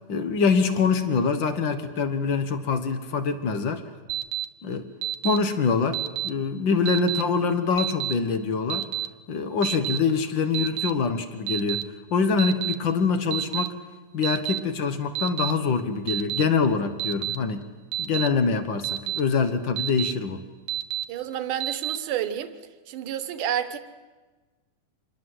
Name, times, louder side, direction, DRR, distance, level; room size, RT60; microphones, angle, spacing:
voice 1, 0.1-3.8 4.6-4.9 5.2-8.9 9.3-11.8 12.1-13.7 14.1-17.6 18.0-20.4, left 5 dB, 65° left, 10 dB, 1.2 m, -24 dB
Alarm, 4.1-4.5 5.0-5.4 5.9-6.3 6.9-7.2 7.8-8.1 8.7-9.1 9.6-10.0 10.5-10.9 11.5-11.8 12.4-12.7 13.3-13.7 14.2-14.6 15.2-15.5 16.1-16.4 17.0-17.4 17.9-18.3 18.8-19.2 19.8-20.1 20.7-21.0 21.6-22.0, right 13 dB, 90° right, 2.6 m, -29 dB
voice 2, 21.1-22.5 22.9-23.8, right 10 dB, 75° right, 11 dB, 2.6 m, -29 dB
26.5 x 21.5 x 7.8 m, 1.3 s
omnidirectional pair, 3.9 m